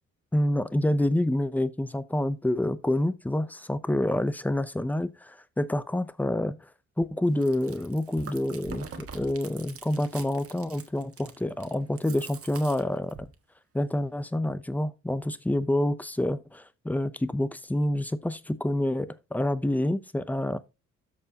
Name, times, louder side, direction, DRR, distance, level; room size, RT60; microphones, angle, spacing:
voice 1, 0.3-6.6 7.0-13.2 13.7-20.6, left 1 dB, 5° left, 0.7 m, -27 dB
Chewing mastication, 7.3-13.3, right 5 dB, 50° right, 1.5 m, -45 dB
13.0 x 4.7 x 2.9 m
cardioid pair, 90°, 30 cm